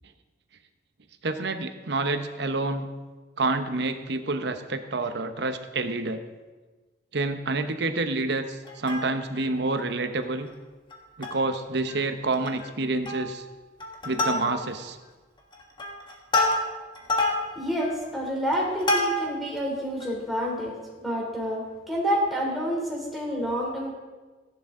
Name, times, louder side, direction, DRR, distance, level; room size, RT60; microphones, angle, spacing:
voice 1, 1.2-2.9 3.4-6.2 7.1-10.5 11.2-13.4 14.0-15.0, right 2 dB, 60° right, 8 dB, 0.9 m, -28 dB
Plucked string instrument, 8.7-9.5 9.9-10.0 10.2-10.5 10.9-11.6 11.9-12.0 12.3-12.7 13.1-13.4 13.8-14.9 15.4-19.5 20.0-20.1, left 2 dB, 25° left, 1.8 m, -28 dB
voice 2, 17.5-23.9, equal, ahead, -4 dB, 3.2 m, -28 dB
15.5 x 11.0 x 3.8 m, 1.3 s
head